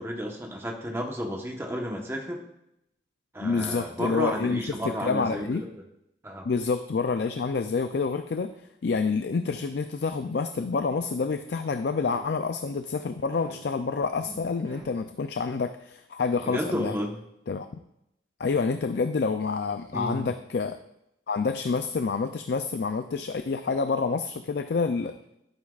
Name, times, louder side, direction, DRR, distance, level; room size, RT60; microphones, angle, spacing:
voice 1, 0.0-2.4 3.3-5.7 6.2-6.5 14.2-14.4 16.4-17.2 19.9-20.3, equal, 15° right, 1 dB, 1.1 m, -32 dB
voice 2, 3.4-4.7 5.0-5.6 6.5-8.5 8.8-16.9 17.5-17.7 18.4-20.8 21.3-25.2, left 4 dB, 60° left, 8 dB, 0.4 m, -28 dB
sound 1, 12.0-12.6 13.3-14.0 14.7-14.8, right 1 dB, 35° right, 4.0 m, -46 dB
11.5 x 9.8 x 2.4 m, 0.81 s
head